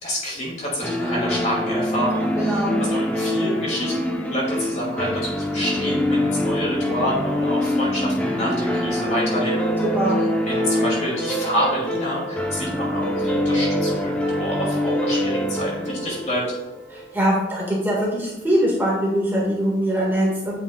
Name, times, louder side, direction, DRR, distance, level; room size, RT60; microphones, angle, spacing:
voice 1, 0.0-9.7 10.5-16.4, equal, 40° left, -4 dB, 2.4 m, -28 dB
sound 1, 0.8-17.5, left 1 dB, 5° left, 0.7 m, -24 dB
voice 2, 2.4-2.8 9.8-10.2 16.9-20.6, equal, 10° right, -4 dB, 1.6 m, -22 dB
8.8 x 5.4 x 2.3 m, 0.98 s
head